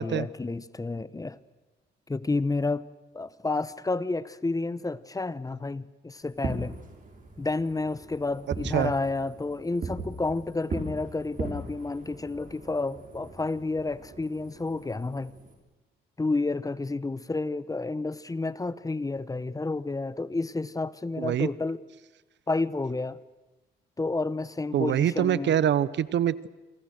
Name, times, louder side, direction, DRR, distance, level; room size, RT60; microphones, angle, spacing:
voice 1, 0.0-1.4 2.1-2.8 3.1-6.7 7.4-15.3 16.2-21.8 22.5-23.2 24.0-25.5, left 3 dB, 15° left, 17 dB, 0.9 m, -30 dB
Fireworks, 6.3-15.5, right 3 dB, 45° right, 6.6 m, -40 dB
voice 2, 21.2-21.5 24.7-26.5, right 10 dB, 65° right, 19 dB, 0.9 m, -25 dB
28.0 x 24.0 x 6.5 m, 1.1 s
cardioid pair, 90°, 20 cm